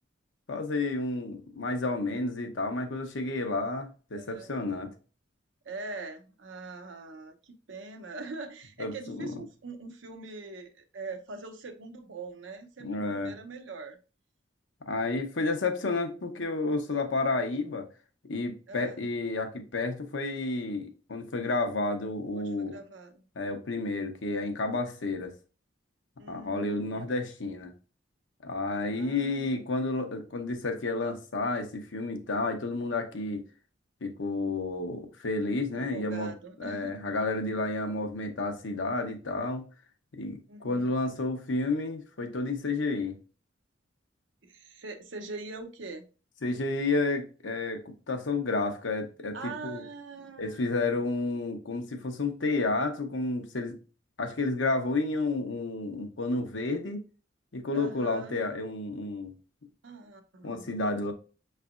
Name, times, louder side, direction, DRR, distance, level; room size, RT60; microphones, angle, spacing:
voice 1, 0.5-4.9 8.8-9.3 12.8-13.3 14.9-17.8 18.2-22.8 23.4-25.3 26.3-27.7 28.4-33.4 34.0-36.3 36.6-39.7 40.1-43.2 46.4-49.8 50.4-53.7 54.2-57.0 57.5-59.3 60.4-61.1, left 3 dB, 75° left, 0.8 m, -31 dB
voice 2, 4.2-4.5 5.6-14.0 18.7-19.0 22.3-23.3 26.2-27.1 28.9-29.5 35.7-37.0 40.5-40.9 44.4-46.0 49.3-51.0 57.7-58.4 59.8-60.7, right 3 dB, 80° right, 0.7 m, -43 dB
5.8 x 3.3 x 2.4 m
head